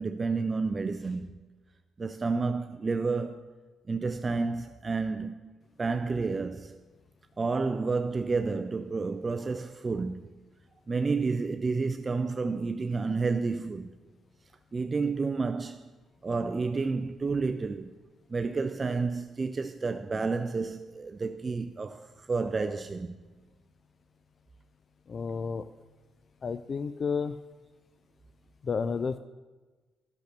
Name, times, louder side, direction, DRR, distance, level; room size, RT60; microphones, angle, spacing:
voice 1, 0.0-1.5 2.0-3.5 3.9-5.5 5.8-6.8 7.4-10.3 10.9-13.9 14.7-15.9 16.2-17.9 18.3-23.1, right 4 dB, 30° right, 0.4 m, -30 dB
voice 2, 25.1-25.6 26.4-27.4 28.6-29.2, left 5 dB, 45° left, 0.4 m, -31 dB
10.5 x 6.5 x 6.6 m
cardioid pair, 90°, 0 cm